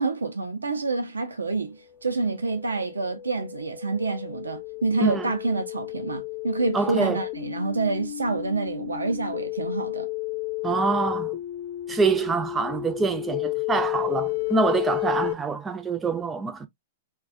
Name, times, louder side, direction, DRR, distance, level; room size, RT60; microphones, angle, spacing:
voice 1, 0.0-10.1, right 3 dB, 90° right, 0.5 m, -28 dB
sound 1, 2.1-15.3, left 18 dB, 55° left, 0.7 m, -32 dB
voice 2, 5.0-5.3 6.7-7.2 10.6-11.4 11.9-16.7, right 4 dB, 15° right, 0.5 m, -25 dB
2.2 x 2.2 x 2.4 m
hypercardioid pair, 110°, 0 cm